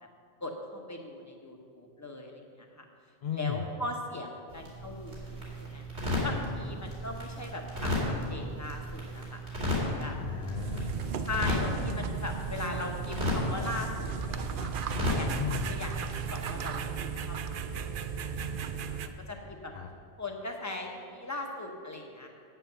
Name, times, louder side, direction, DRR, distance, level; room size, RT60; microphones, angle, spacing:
voice 1, 0.4-2.8 3.3-5.8 6.2-9.4 9.8-10.2 11.2-14.7 15.1-18.1 18.4-19.7 20.2-22.3, left 2 dB, 15° left, 2 dB, 1.1 m, -39 dB
voice 2, 3.2-3.6 10.1-11.0 15.3-15.7 19.7-19.9, left 8 dB, 55° left, 6 dB, 0.5 m, -35 dB
sound 1, 4.5-16.6, left 1 dB, 80° right, 3.1 m, -34 dB
sound 2, 10.5-19.1, right 6 dB, 60° right, 0.7 m, -36 dB
9.0 x 7.8 x 6.8 m, 2.3 s
omnidirectional pair, 1.1 m